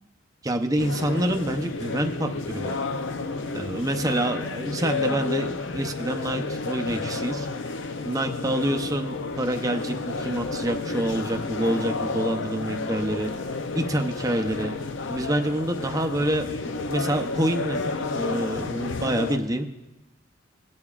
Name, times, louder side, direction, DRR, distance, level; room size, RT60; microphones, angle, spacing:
voice 1, 0.4-2.8 3.5-7.5 8.0-13.3 13.7-14.7 15.1-17.8 18.1-19.7, right 1 dB, 15° right, 4 dB, 0.6 m, -27 dB
sound 1, 0.8-19.4, left 3 dB, 65° left, 0.5 m, -31 dB
18.5 x 8.8 x 2.4 m, 1.0 s
head